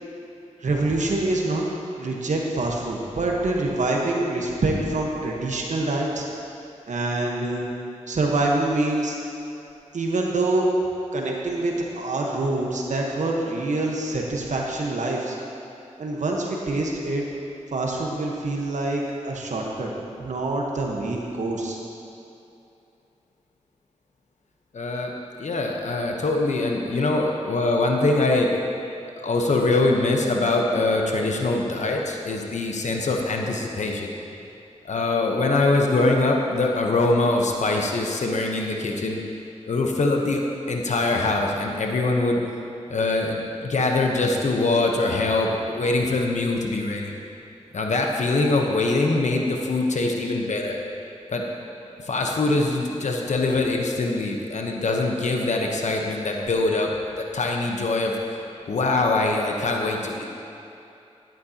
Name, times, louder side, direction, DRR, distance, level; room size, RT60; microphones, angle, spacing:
voice 1, 0.6-1.7 2.0-6.3 6.9-7.6 8.1-9.2 9.9-10.7 11.1-15.4 16.0-17.3 17.7-19.9 20.2-21.8, right 2 dB, 75° right, -1 dB, 1.2 m, -25 dB
voice 2, 24.7-25.1 25.4-28.5 29.2-34.1 34.8-39.2 39.7-42.4 42.9-47.1 47.7-50.8 51.3-51.4 52.0-56.9 57.2-58.1 58.7-60.3, left 2 dB, 70° left, 1 dB, 1.0 m, -23 dB
11.5 x 10.5 x 2.9 m, 2.8 s
cardioid pair, 55°, 13 cm